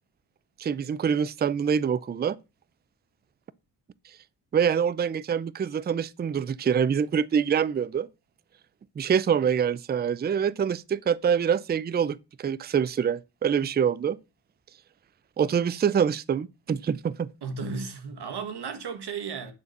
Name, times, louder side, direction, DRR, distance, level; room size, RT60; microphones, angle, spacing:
voice 1, 0.6-2.4 4.5-8.1 9.0-14.2 15.4-17.3, right 7 dB, 25° right, 0.4 m, -25 dB
voice 2, 17.4-19.5, right 5 dB, 65° right, 1.5 m, -34 dB
9.7 x 4.1 x 6.5 m
cardioid pair, 90°, 42 cm